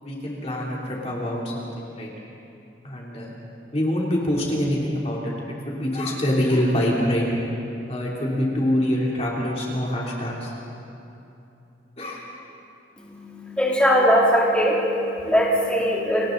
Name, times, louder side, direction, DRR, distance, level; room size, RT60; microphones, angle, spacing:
voice 1, 0.0-2.1 2.8-3.3 3.7-7.3 7.9-10.5 12.0-12.2, left 1 dB, 35° left, -4 dB, 3.1 m, -25 dB
voice 2, 13.0-16.3, equal, 5° left, -5 dB, 3.5 m, -21 dB
29.5 x 25.0 x 4.0 m, 2.8 s
head